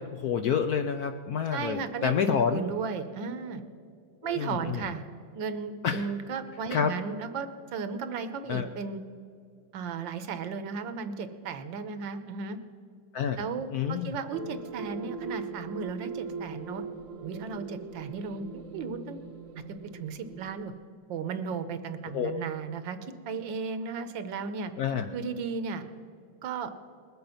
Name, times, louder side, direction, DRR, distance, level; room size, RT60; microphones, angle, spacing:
voice 1, 0.0-2.6 4.3-4.9 5.8-6.0 6.7-6.9 8.5-8.7 13.1-13.4 13.7-14.1 22.1-22.3 24.8-25.1, left 7 dB, 70° left, 7 dB, 0.9 m, -28 dB
voice 2, 1.5-3.6 4.2-9.0 9.7-12.6 13.4-16.8 17.2-18.5 18.7-19.2 19.9-20.7 21.1-23.0 23.3-24.7 25.1-25.8 26.4-26.7, right 5 dB, 75° right, 10 dB, 1.5 m, -35 dB
sound 1, 14.3-20.7, right 4 dB, 60° right, 0.9 m, -40 dB
20.5 x 7.9 x 5.6 m, 2.3 s
omnidirectional pair, 2.1 m